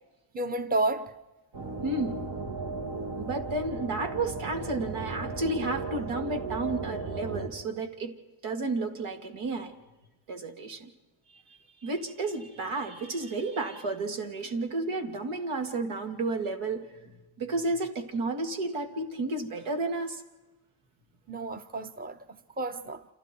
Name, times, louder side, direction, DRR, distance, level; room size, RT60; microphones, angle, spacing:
voice 1, 0.3-1.1 21.3-23.1, right 2 dB, 20° right, 1.0 m, -31 dB
sound 1, 1.5-7.5, right 3 dB, 65° right, 3.3 m, -35 dB
voice 2, 1.8-2.2 3.2-8.1 8.4-9.7 10.3-10.9 11.3-17.1 17.4-20.2, right 2 dB, 80° right, 3.0 m, -32 dB
30.0 x 27.5 x 4.7 m
cardioid pair, 125°, 48 cm